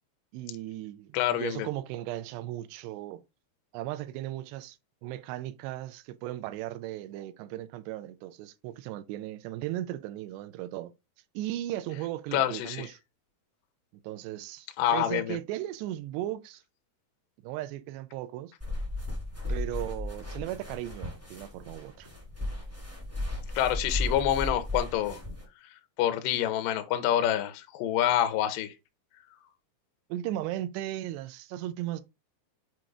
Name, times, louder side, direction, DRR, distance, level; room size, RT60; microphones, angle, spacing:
voice 1, 0.3-3.2 3.7-4.8 5.0-10.9 11.3-13.0 14.0-14.7 14.9-16.6 17.4-18.5 19.5-22.1 30.1-32.0, right 14 dB, 85° right, 2.6 m, -36 dB
voice 2, 1.1-1.7 12.3-12.9 14.8-15.4 23.6-25.2 26.0-28.7, left 11 dB, 90° left, 1.9 m, -27 dB
sound 1, 18.6-25.4, left 1 dB, 25° right, 0.3 m, -35 dB
7.6 x 2.6 x 4.8 m
omnidirectional pair, 5.0 m